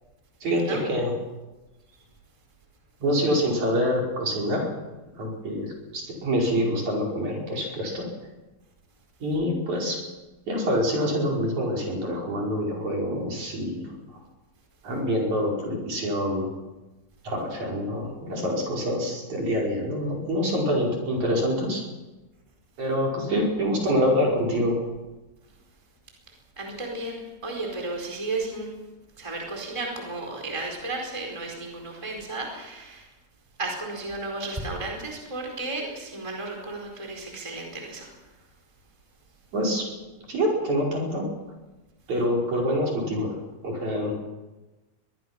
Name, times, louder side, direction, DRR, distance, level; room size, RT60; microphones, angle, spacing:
voice 1, 0.4-1.1 3.0-4.7 5.2-8.1 9.2-10.0 10.5-13.9 14.8-16.5 17.2-21.8 22.8-24.9 39.5-39.9 40.3-41.2 42.1-43.3 43.6-44.1, equal, 45° right, -2 dB, 6.3 m, -26 dB
voice 2, 26.6-28.7 29.2-33.1 33.6-38.3, right 2 dB, 5° right, 1 dB, 4.2 m, -34 dB
23.5 x 22.0 x 5.9 m, 1.1 s
omnidirectional pair, 4.5 m